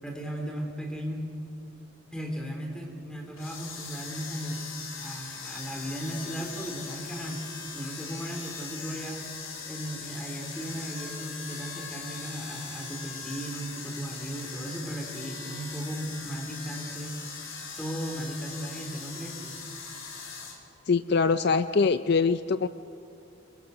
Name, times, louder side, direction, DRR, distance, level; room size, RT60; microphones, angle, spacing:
voice 1, 0.0-1.2 2.1-4.7 5.0-7.4 7.7-9.2 9.7-17.2 17.8-19.6, right 1 dB, 5° left, 1 dB, 3.4 m, -36 dB
sound 1, 3.3-20.6, left 5 dB, 70° left, 3.4 m, -40 dB
voice 2, 20.9-22.7, left 4 dB, 50° left, 12 dB, 0.5 m, -23 dB
28.0 x 22.0 x 6.6 m, 2.6 s
head